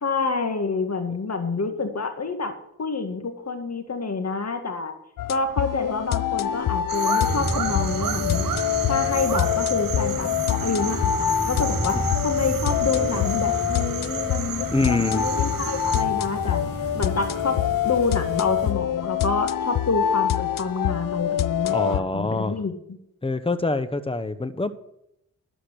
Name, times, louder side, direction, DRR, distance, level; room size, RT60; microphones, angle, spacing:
voice 1, 0.0-4.9 5.3-8.5 8.9-12.0 12.2-16.6 16.9-17.6 17.8-22.7, left 4 dB, 50° left, 7 dB, 2.0 m, -27 dB
sound 1, 5.2-22.0, left 11 dB, 75° left, 0.5 m, -25 dB
sound 2, 6.9-16.0, right 10 dB, 75° right, 0.8 m, -33 dB
sound 3, 7.3-18.7, right 2 dB, 40° right, 4.2 m, -32 dB
voice 2, 14.7-15.3 21.7-22.5 23.2-24.7, left 2 dB, 15° left, 13 dB, 1.0 m, -25 dB
12.0 x 5.1 x 8.1 m, 0.80 s
cardioid pair, 55°, 34 cm